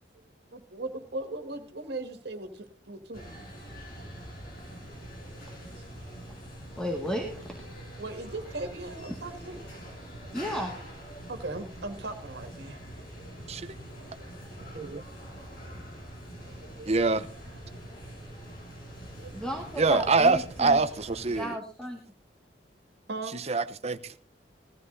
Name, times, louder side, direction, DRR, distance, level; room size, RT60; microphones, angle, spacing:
voice 1, 0.5-3.2 8.0-10.3 11.3-12.8 13.2-13.4 14.2-14.3 16.4-16.9 19.2-19.3 23.1-23.4, right 2 dB, 65° right, 2.1 m, -39 dB
sound 1, 3.1-21.4, equal, 55° left, 5.4 m, -44 dB
voice 2, 6.8-7.5 10.3-10.8 19.3-20.8 21.3-22.0, equal, 5° left, 1.9 m, -34 dB
voice 3, 16.9-17.2 19.8-21.5 23.5-24.1, right 3 dB, 40° right, 0.8 m, -25 dB
19.5 x 14.5 x 2.7 m
head